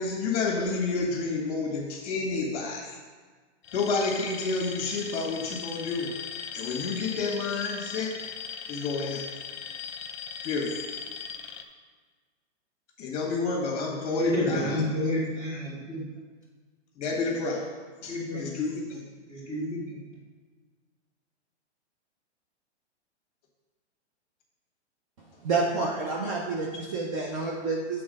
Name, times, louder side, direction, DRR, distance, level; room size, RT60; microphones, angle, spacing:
voice 1, 0.0-3.0 3.7-6.1 6.5-8.1 8.7-9.2 10.4-10.9 13.0-15.1 17.0-19.0, left 3 dB, 35° left, -1 dB, 1.6 m, -30 dB
Alarm, 3.6-11.6, left 7 dB, 60° left, 0.8 m, -39 dB
voice 2, 14.1-16.1 18.1-18.5 19.3-20.0, left 1 dB, 10° right, -7 dB, 1.6 m, -30 dB
voice 3, 25.4-28.0, right 3 dB, 30° right, -2 dB, 0.6 m, -29 dB
7.7 x 3.8 x 5.3 m, 1.4 s
hypercardioid pair, 160°, 35 cm